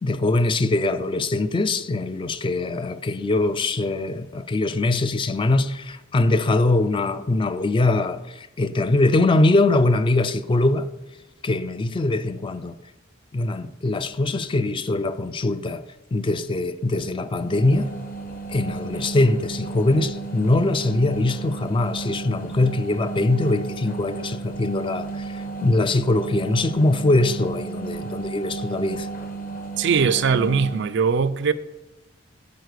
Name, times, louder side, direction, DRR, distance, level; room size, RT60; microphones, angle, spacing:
voice 1, 0.0-10.9 11.4-12.8 13.3-15.8 16.1-17.9 18.5-29.1, left 2 dB, 25° left, 0.3 m, -22 dB
sound 1, 17.4-31.0, right 4 dB, 50° left, 1.0 m, -34 dB
voice 2, 29.8-31.5, right 5 dB, 65° right, 0.4 m, -20 dB
9.3 x 4.0 x 6.7 m
head